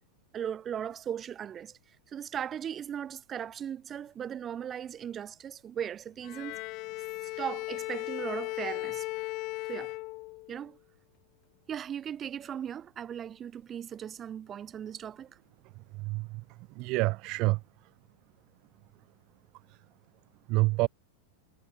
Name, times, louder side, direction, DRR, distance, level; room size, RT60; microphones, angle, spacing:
voice 1, 0.3-1.8 2.1-6.6 7.2-9.1 9.7-9.9 10.5-10.8 11.7-15.4, right 9 dB, 20° right, 7.0 m, -38 dB
Bowed string instrument, 6.2-10.7, left 23 dB, 40° left, 1.4 m, -37 dB
voice 2, 16.8-17.6 20.5-20.9, right 23 dB, 40° right, 0.3 m, -26 dB
supercardioid pair, 155°, 0 cm